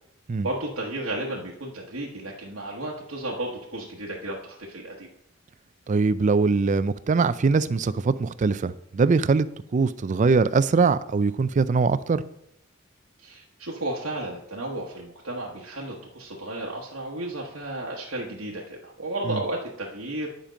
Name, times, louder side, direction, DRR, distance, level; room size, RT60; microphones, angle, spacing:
voice 1, 0.4-5.1 13.2-20.3, right 1 dB, 65° right, 1.2 m, -33 dB
voice 2, 5.9-9.5 9.7-12.2 19.3-19.4, right 4 dB, 35° right, 0.4 m, -22 dB
10.0 x 5.2 x 5.1 m
head